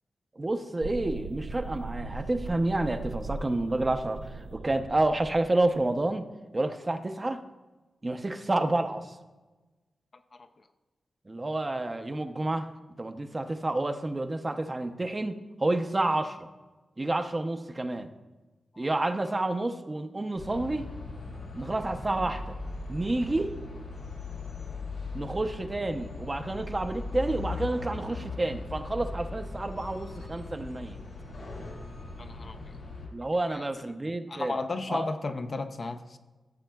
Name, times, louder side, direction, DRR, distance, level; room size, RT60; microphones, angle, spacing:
voice 1, 0.4-6.2 6.5-7.4 8.0-9.2 11.3-12.7 13.0-16.5 17.0-18.1 18.8-20.9 21.5-22.5 22.9-23.5 25.1-31.0 33.1-34.6 34.9-35.1, right 2 dB, 30° right, 8 dB, 0.6 m, -29 dB
sound 1, 0.8-5.9, right 3 dB, 80° right, 0.4 m, -39 dB
sound 2, 20.4-33.1, left 2 dB, 75° left, 2.4 m, -39 dB
voice 2, 32.2-32.6 33.5-33.7 34.3-36.2, left 3 dB, 50° left, 7 dB, 0.5 m, -34 dB
14.5 x 7.1 x 2.3 m, 1.2 s
cardioid pair, 70°, 0 cm